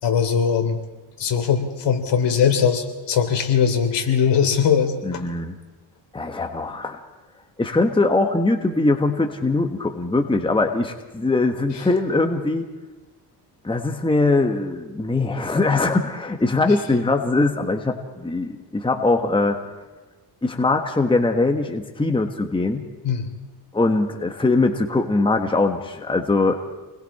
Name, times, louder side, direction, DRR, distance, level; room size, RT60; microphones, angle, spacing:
voice 1, 0.0-0.8 1.2-5.2 23.0-23.4, left 7 dB, 65° left, 5 dB, 3.3 m, -20 dB
voice 2, 5.0-5.5 6.1-7.0 7.6-12.7 13.6-19.6 20.4-22.9 23.7-26.6, left 2 dB, 10° left, 4 dB, 1.5 m, -21 dB
28.5 x 21.0 x 4.3 m, 1.2 s
cardioid pair, 105°, 45 cm